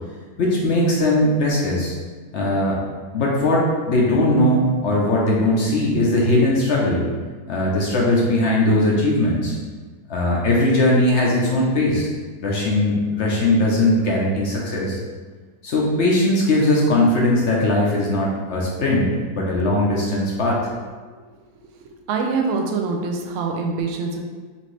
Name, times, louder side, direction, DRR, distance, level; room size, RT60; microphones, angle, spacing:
voice 1, 0.4-1.9 2.3-2.8 3.1-7.0 7.5-9.6 10.1-12.1 12.4-15.0 15.6-20.6, left 1 dB, 60° left, -3 dB, 0.7 m, -19 dB
voice 2, 22.1-24.2, right 4 dB, 85° right, 2 dB, 0.6 m, -24 dB
5.6 x 2.6 x 3.2 m, 1.4 s
omnidirectional pair, 2.0 m